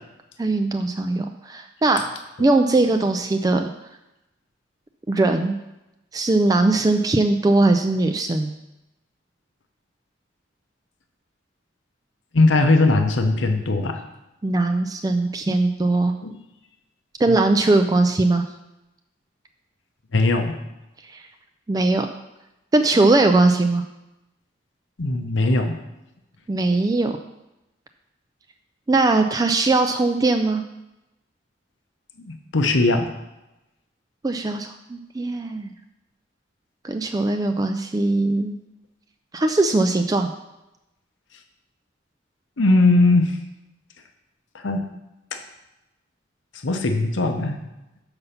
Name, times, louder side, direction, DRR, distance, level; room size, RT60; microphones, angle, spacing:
voice 1, 0.4-1.3 1.5-2.1 2.4-3.7 5.1-5.6 6.1-8.5 14.4-16.1 17.2-18.4 21.1-21.2 21.7-22.1 22.7-23.8 26.5-27.1 28.9-30.6 34.2-35.7 36.8-38.6 39.3-40.3, right 2 dB, 20° right, 6 dB, 0.3 m, -20 dB
voice 2, 12.3-14.0 16.2-16.4 20.1-20.6 25.0-25.8 32.2-33.1 42.6-43.4 44.6-44.9 45.3-45.4 46.6-47.6, left 2 dB, 80° left, 6 dB, 0.8 m, -19 dB
6.9 x 5.3 x 5.7 m, 0.95 s
head